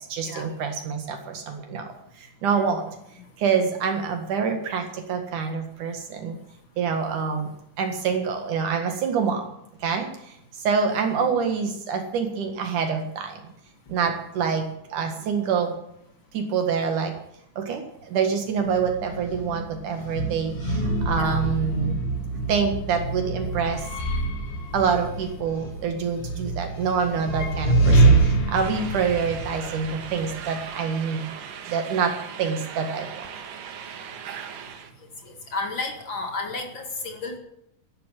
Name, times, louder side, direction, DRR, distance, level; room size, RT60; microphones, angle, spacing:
voice 1, 0.0-2.9 3.4-6.4 6.8-7.5 7.8-9.5 9.8-13.4 13.9-15.7 16.3-17.1 17.6-22.0 22.5-23.9 24.7-31.4 31.7-33.3, right 6 dB, 75° right, 4 dB, 3.3 m, -26 dB
voice 2, 10.9-11.3 15.0-15.1 21.2-21.4 28.9-29.1 35.0-37.4, left 3 dB, 40° left, 4 dB, 2.3 m, -33 dB
sound 1, 18.6-30.7, right 3 dB, 75° left, 4.2 m, -25 dB
sound 2, 28.5-34.9, right 7 dB, 90° right, 3.1 m, -39 dB
13.0 x 11.0 x 9.2 m, 0.75 s
omnidirectional pair, 3.7 m